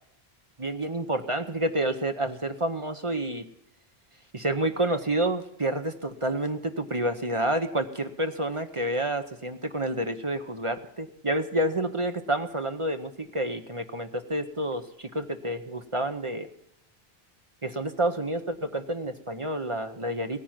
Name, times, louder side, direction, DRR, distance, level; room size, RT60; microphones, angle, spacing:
voice 1, 0.6-3.4 4.3-16.5 17.6-20.4, right 1 dB, 30° right, 7 dB, 1.0 m, -29 dB
17.5 x 9.8 x 5.8 m, 0.80 s
omnidirectional pair, 1.0 m